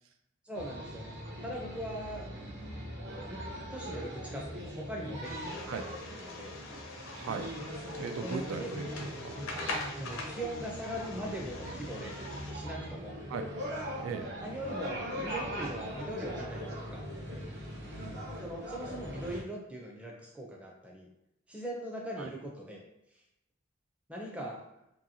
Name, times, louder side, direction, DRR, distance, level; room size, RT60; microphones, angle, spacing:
voice 1, 0.4-1.1 1.4-2.3 3.3-3.4 3.7-5.7 6.2-6.5 8.2-8.7 9.9-12.1 12.5-13.2 14.4-17.0 18.4-21.1 21.5-22.8 24.1-24.6, equal, 5° right, -1 dB, 0.5 m, -40 dB
sound 1, 0.5-19.4, equal, 60° right, 0.8 m, -41 dB
sound 2, 5.2-12.5, left 3 dB, 80° left, 0.5 m, -43 dB
voice 2, 7.1-7.5 8.0-9.4 9.7-9.9 13.3-13.5 14.0-14.3 18.0-18.3 22.2-22.3, right 5 dB, 85° right, 8 dB, 0.3 m, -39 dB
2.8 x 2.6 x 2.6 m, 0.84 s
head